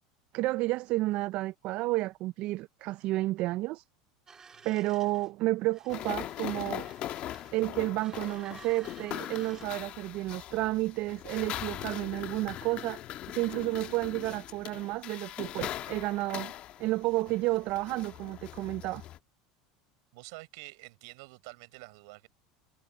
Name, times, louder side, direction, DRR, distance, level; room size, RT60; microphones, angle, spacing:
voice 1, 0.3-3.8 4.6-6.9 7.5-13.0 13.3-16.5 16.8-19.0, right 19 dB, 55° right, 0.4 m, -31 dB
sound 1, 4.3-5.3 5.7-7.7 7.9-9.7, right 5 dB, 20° right, 1.6 m, -53 dB
sound 2, 5.9-19.2, left 13 dB, 45° left, 1.3 m, -41 dB
voice 2, 20.1-22.3, right 27 dB, 75° right, 7.1 m, -48 dB
supercardioid pair, 120°, 3 cm